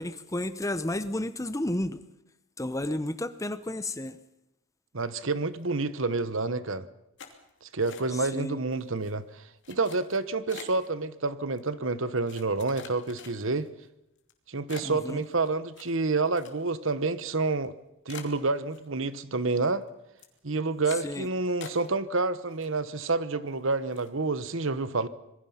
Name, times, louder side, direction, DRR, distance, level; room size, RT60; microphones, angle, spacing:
voice 1, 0.0-2.0 2.6-4.2 8.3-8.6 14.8-15.2 21.0-21.3, left 1 dB, 15° left, 13 dB, 0.8 m, -32 dB
voice 2, 4.9-6.9 7.6-13.7 14.5-17.7 18.1-19.8 20.4-25.1, right 3 dB, 60° right, 14 dB, 1.1 m, -29 dB
sound 1, 7.2-8.4 8.7-9.1 9.6-10.9 11.6-11.7 12.3-13.7 14.2-14.3 14.7-16.9 17.2-17.3 17.6-17.7 18.1-19.1 19.5-19.9 20.2-20.4 20.9-21.2 21.6-22.2 22.5-23.1 23.5-23.6 23.9-24.2, left 6 dB, 55° left, 2.9 m, -46 dB
26.5 x 21.0 x 5.8 m, 0.88 s
head